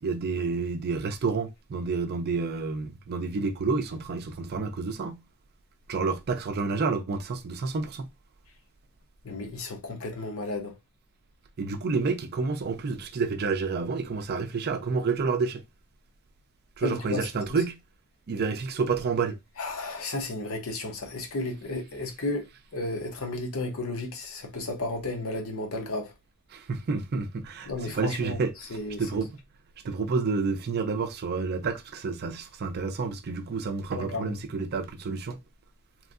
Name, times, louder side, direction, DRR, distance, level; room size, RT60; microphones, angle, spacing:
voice 1, 0.0-5.2 5.9-8.1 11.6-15.6 16.8-17.8 18.3-19.4 26.5-29.3 29.8-35.4, right 4 dB, 45° right, 0.4 m, -29 dB
voice 2, 9.2-10.7 16.8-17.3 19.6-26.1 27.7-28.4 28.7-29.2 33.9-34.3, left 2 dB, 70° left, 0.8 m, -33 dB
3.0 x 2.6 x 2.4 m
head